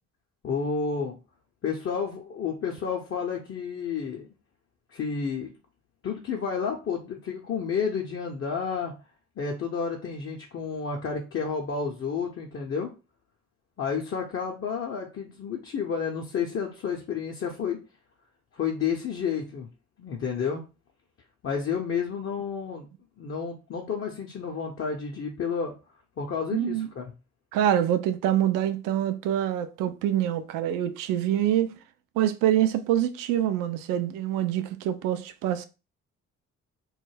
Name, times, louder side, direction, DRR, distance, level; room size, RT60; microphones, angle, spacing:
voice 1, 0.4-1.2 1.6-4.3 4.9-5.5 6.0-8.9 9.4-12.9 13.8-17.8 18.5-19.7 20.0-20.6 21.4-22.9 23.2-25.7 26.2-27.1, left 6 dB, 35° left, 0.6 m, -30 dB
voice 2, 26.5-26.9 27.5-31.8 32.2-35.7, right 11 dB, 60° right, 0.5 m, -25 dB
2.3 x 2.1 x 3.2 m
hypercardioid pair, 45°, 36 cm